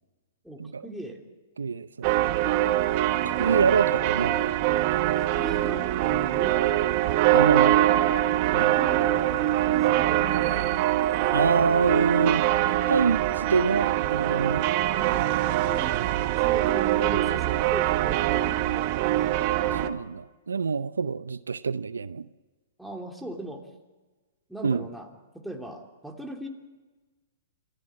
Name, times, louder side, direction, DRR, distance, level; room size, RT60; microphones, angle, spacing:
voice 1, 0.4-1.2 5.2-6.6 7.3-8.0 8.5-10.8 15.3-16.0 16.4-19.4 22.8-23.7 24.5-26.5, right 1 dB, ahead, 1 dB, 3.0 m, -39 dB
voice 2, 1.6-2.1 3.2-4.5 7.3-7.8 8.5-8.7 11.3-12.5 12.9-14.7 19.8-22.3 24.6-24.8, right 5 dB, 90° right, 16 dB, 0.6 m, -26 dB
sound 1, 2.0-19.9, right 14 dB, 45° right, 1.4 m, -23 dB
27.0 x 15.0 x 8.7 m, 1.3 s
hypercardioid pair, 120°, 0 cm